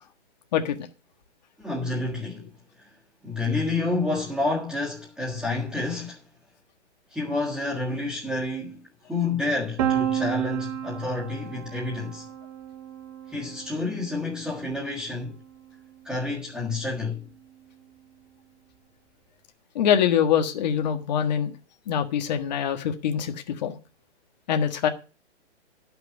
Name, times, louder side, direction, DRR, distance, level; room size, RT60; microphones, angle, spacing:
voice 1, 1.6-2.5 3.2-6.2 7.1-8.8 9.1-12.3 13.3-15.4 16.0-17.3, left 3 dB, ahead, 1.7 m, -29 dB
Piano, 9.8-15.6, right 10 dB, 35° right, 1.3 m, -32 dB
voice 2, 19.7-21.6 21.9-23.3 23.6-23.8 24.5-24.9, left 8 dB, 35° left, 1.5 m, -24 dB
11.5 x 6.1 x 7.1 m
hypercardioid pair, 165°, 35 cm